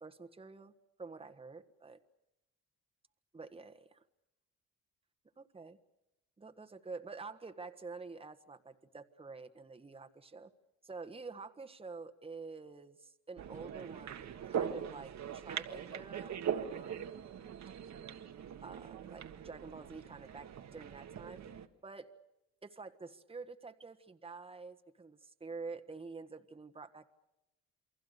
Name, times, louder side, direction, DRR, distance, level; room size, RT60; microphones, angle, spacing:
voice 1, 0.0-0.7 1.0-2.0 3.3-4.0 5.4-5.8 6.4-10.5 10.8-17.2 18.6-21.4 21.8-22.1 22.6-27.1, right 4 dB, 20° right, 7 dB, 1.5 m, -48 dB
sound 1, 13.4-21.7, right 8 dB, 65° right, 1.6 m, -41 dB
29.0 x 23.0 x 6.7 m, 0.90 s
cardioid pair, 90°, 30 cm